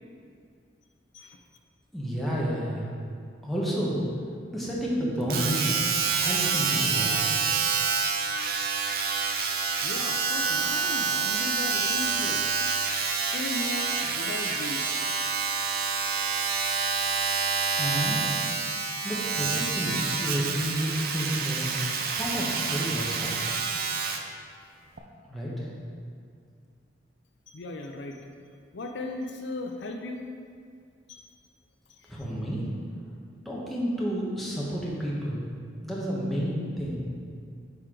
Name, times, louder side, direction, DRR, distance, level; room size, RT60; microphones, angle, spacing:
voice 1, 1.9-2.9 3.4-4.0 4.5-5.8 6.1-7.4 17.8-18.3 19.0-23.5 25.2-25.7 32.1-32.6 33.4-35.4 35.8-37.0, equal, ahead, -6 dB, 1.1 m, -30 dB
Domestic sounds home sounds, 5.3-24.3 25.0-25.1, right 5 dB, 50° right, 0.5 m, -28 dB
voice 2, 9.8-12.5 12.8-15.3 15.7-15.9 27.5-28.2 28.7-30.2 31.1-31.2 31.9-32.2, left 2 dB, 65° left, 3 dB, 0.5 m, -37 dB
9.1 x 4.5 x 3.8 m, 2.2 s
head